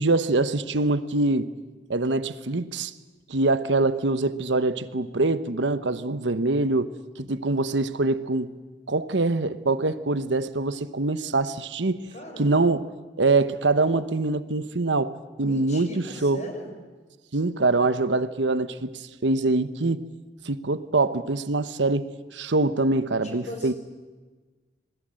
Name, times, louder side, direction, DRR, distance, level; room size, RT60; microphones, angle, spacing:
voice 1, 0.0-1.5 1.9-2.9 3.3-8.5 8.9-12.1 12.4-12.8 13.2-16.4 17.3-20.0 20.4-22.1 22.3-23.7, right 2 dB, 80° right, 1.1 m, -24 dB
voice 2, 12.1-12.7 15.4-16.7 23.2-23.7, left 1 dB, 40° left, 5.0 m, -39 dB
27.0 x 20.5 x 7.8 m
head